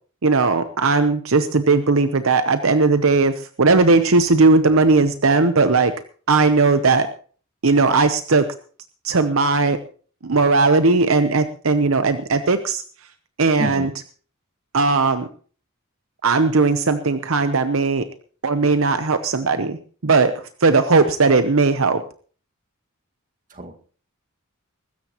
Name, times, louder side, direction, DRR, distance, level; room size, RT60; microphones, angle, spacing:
voice 1, 0.2-5.9 6.3-7.1 7.6-8.5 9.0-9.8 10.2-12.8 13.4-13.9 14.7-15.3 16.2-18.0 18.4-20.3 20.6-22.0, right 3 dB, 65° right, 10 dB, 0.8 m, -17 dB
voice 2, 13.6-13.9 23.5-23.7, right 1 dB, 40° right, 4 dB, 2.0 m, -28 dB
22.5 x 13.5 x 3.0 m, 0.42 s
head